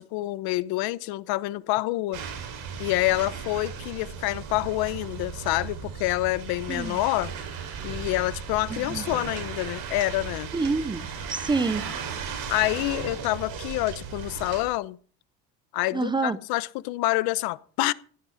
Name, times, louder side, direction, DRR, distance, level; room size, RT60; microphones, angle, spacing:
voice 1, 0.0-2.2 2.8-7.3 7.8-10.5 12.5-15.0 15.7-17.9, left 18 dB, 75° left, 1.0 m, -27 dB
sound 1, 2.1-14.6, right 6 dB, 60° right, 5.0 m, -36 dB
voice 2, 8.7-9.0 10.5-11.8 15.9-16.4, right 3 dB, 10° right, 0.6 m, -27 dB
16.0 x 11.0 x 5.8 m
cardioid pair, 150°, 37 cm